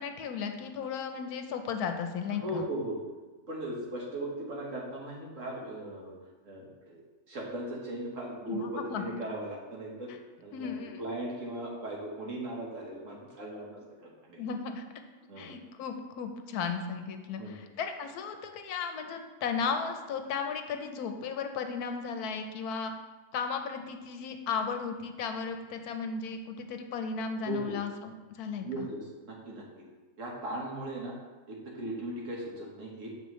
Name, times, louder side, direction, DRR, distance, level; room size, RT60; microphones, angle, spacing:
voice 1, 0.0-2.7 8.5-9.1 10.1-10.2 10.5-11.0 14.4-14.9 15.4-22.9 23.3-28.9, left 6 dB, 85° left, 6 dB, 1.2 m, -35 dB
voice 2, 2.3-3.0 3.5-6.2 6.4-7.0 7.3-10.1 10.4-14.4 15.3-15.5 17.4-17.6 27.4-27.8 28.6-29.9 30.2-31.2 31.5-33.1, right 1 dB, 60° right, -3 dB, 1.6 m, -38 dB
7.0 x 6.1 x 3.1 m, 1.3 s
omnidirectional pair, 1.6 m